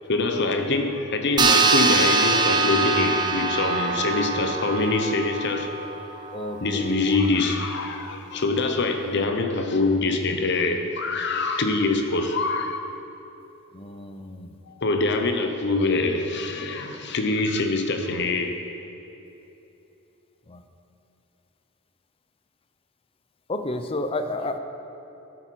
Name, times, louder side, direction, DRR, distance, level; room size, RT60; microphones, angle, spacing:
voice 1, 0.1-5.7 6.6-12.8 14.7-18.6, left 3 dB, 50° left, 5 dB, 0.9 m, -24 dB
sound 1, 1.4-6.2, right 4 dB, 20° right, 0.5 m, -23 dB
voice 2, 6.3-7.1 13.7-14.5 20.5-20.6 23.5-24.6, left 2 dB, 25° left, 7 dB, 0.5 m, -31 dB
12.0 x 7.9 x 4.6 m, 2.9 s
head